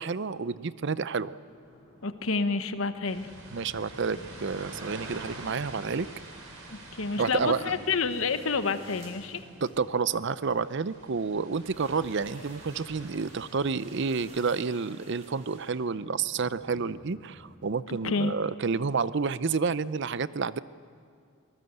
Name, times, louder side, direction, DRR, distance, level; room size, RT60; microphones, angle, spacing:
voice 1, 0.0-1.3 3.5-6.1 7.2-7.7 9.6-20.6, right 5 dB, 55° right, 16 dB, 0.6 m, -29 dB
sound 1, 1.5-17.5, equal, 15° left, 6.2 m, -56 dB
voice 2, 2.0-3.3 6.7-9.4 18.0-18.3, left 4 dB, 70° left, 10 dB, 1.1 m, -29 dB
sound 2, 3.1-14.2, right 2 dB, 75° right, 4.5 m, -47 dB
sound 3, 8.1-9.8 10.5-10.9 11.5-15.7, right 2 dB, 35° right, 4.8 m, -53 dB
24.0 x 19.5 x 7.9 m, 2.3 s
head